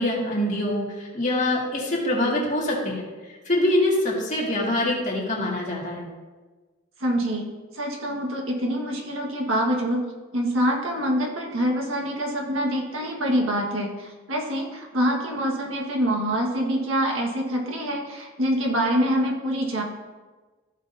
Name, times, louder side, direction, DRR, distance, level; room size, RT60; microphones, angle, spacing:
voice 1, 0.0-3.0 3.5-6.0, left 1 dB, 35° left, -4 dB, 2.2 m, -24 dB
voice 2, 7.0-7.5 7.7-10.0 10.3-19.8, equal, 75° right, 0 dB, 1.7 m, -25 dB
14.5 x 6.3 x 2.8 m, 1.3 s
head